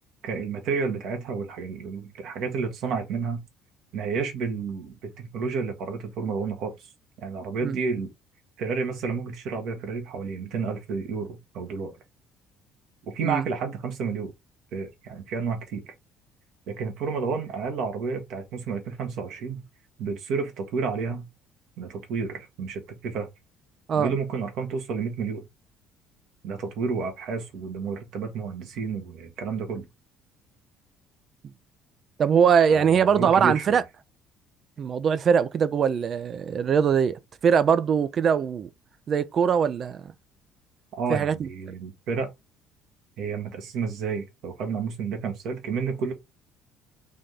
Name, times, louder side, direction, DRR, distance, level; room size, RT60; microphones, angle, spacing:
voice 1, 0.2-3.4 3.9-6.7 7.2-8.1 8.6-11.9 13.1-14.3 14.7-15.9 16.7-19.6 20.0-21.3 21.8-23.3 23.9-25.5 26.4-29.8 32.7-33.8 41.0-42.3 43.2-46.1, right 5 dB, 65° right, 1.1 m, -31 dB
voice 2, 32.2-33.8 34.8-38.7 39.1-40.0 41.1-41.5, right 7 dB, 50° right, 0.4 m, -22 dB
3.4 x 2.7 x 3.5 m
hypercardioid pair, 55°, 0 cm